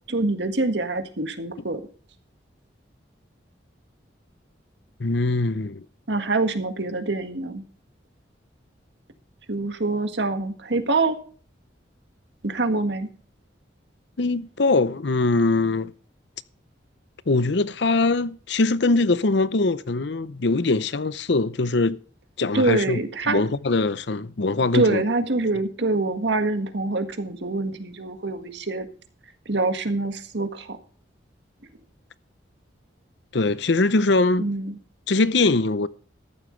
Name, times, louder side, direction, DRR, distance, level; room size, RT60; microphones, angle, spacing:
voice 1, 0.1-1.8 6.1-7.6 9.5-11.2 12.4-13.1 22.5-23.4 24.7-28.9 29.5-30.8 34.4-34.8, right 2 dB, 70° right, 1.7 m, -25 dB
voice 2, 5.0-5.8 14.2-15.9 17.3-22.0 22.4-23.0 23.3-25.0 33.3-34.5 35.1-35.9, left 3 dB, 65° left, 0.7 m, -22 dB
14.0 x 11.5 x 3.2 m
head